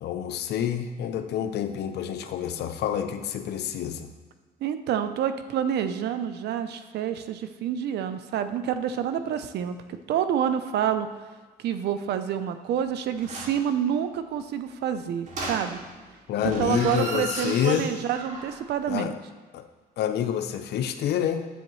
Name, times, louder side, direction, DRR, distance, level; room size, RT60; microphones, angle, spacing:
voice 1, 0.0-4.1 16.3-17.9 18.9-19.1 19.5-19.7 20.0-21.5, left 9 dB, 75° left, 8 dB, 0.7 m, -28 dB
voice 2, 4.6-9.8 10.1-11.1 11.6-15.8 16.6-19.2, right 9 dB, 80° right, 10 dB, 0.6 m, -28 dB
sound 1, 13.2-13.7 15.3-16.0 16.4-18.6 18.9-19.0, right 2 dB, 45° right, 2.4 m, -35 dB
10.0 x 7.6 x 3.1 m, 1.4 s
cardioid pair, 95°, 17 cm